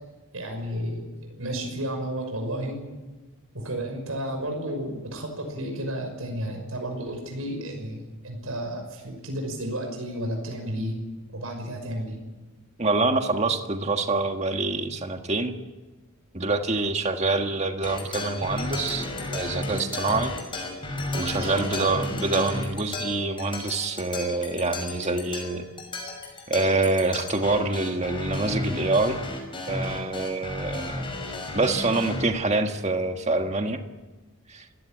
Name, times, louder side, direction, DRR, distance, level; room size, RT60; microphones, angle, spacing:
voice 1, 0.3-1.1 1.4-2.8 3.5-10.9 11.3-12.2 21.3-21.9, right 1 dB, 85° right, 3 dB, 6.0 m, -32 dB
voice 2, 12.8-15.5 16.3-20.3 21.1-25.7 26.5-29.2 29.7-31.0 31.5-33.8 34.5-34.6, right 3 dB, 30° right, 6 dB, 1.6 m, -26 dB
sound 1, 17.8-32.2, left 2 dB, 25° left, 5.9 m, -33 dB
28.0 x 16.5 x 9.2 m, 1.2 s
head